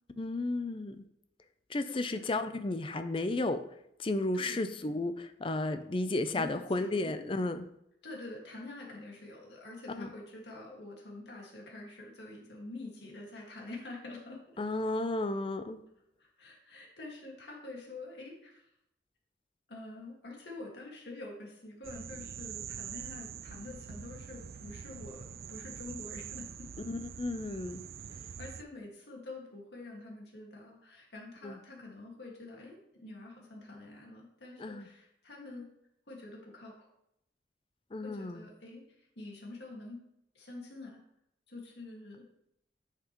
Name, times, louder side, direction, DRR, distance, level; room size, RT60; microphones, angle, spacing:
voice 1, 0.2-1.0 1.7-3.6 4.0-7.7 10.0-10.1 14.6-15.8 26.9-27.8 31.4-31.6 34.6-34.9 37.9-38.4, left 2 dB, 30° left, 10 dB, 0.5 m, -33 dB
voice 2, 1.8-2.3 4.3-4.6 6.3-7.3 8.0-14.6 16.2-18.7 19.7-26.7 28.4-35.7 36.1-36.9 38.0-40.0 40.4-41.0 41.5-42.3, left 2 dB, 75° left, -2 dB, 1.9 m, -46 dB
sound 1, 21.8-28.6, right 8 dB, 55° right, 0.4 m, -44 dB
9.6 x 5.9 x 3.0 m, 0.77 s
head